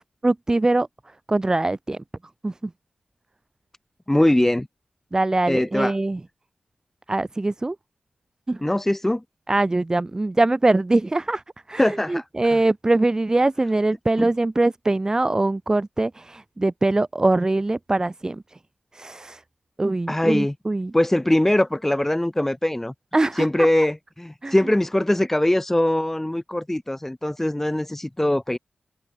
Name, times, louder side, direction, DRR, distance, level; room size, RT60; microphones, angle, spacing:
voice 1, 0.2-0.9 1.3-2.0 2.4-2.7 5.1-6.2 7.1-7.8 8.5-8.6 9.5-11.4 11.7-18.6 18.9-19.4 19.8-20.9 23.1-23.7 24.4-24.5, right 2 dB, 25° right, 2.4 m, -22 dB
voice 2, 4.1-4.7 5.5-5.9 8.6-9.2 11.8-12.2 12.5-12.6 14.2-14.3 20.1-20.5 20.9-22.9 23.3-28.6, left 1 dB, 10° left, 3.6 m, -21 dB
open air
wide cardioid pair, 120°, 3 cm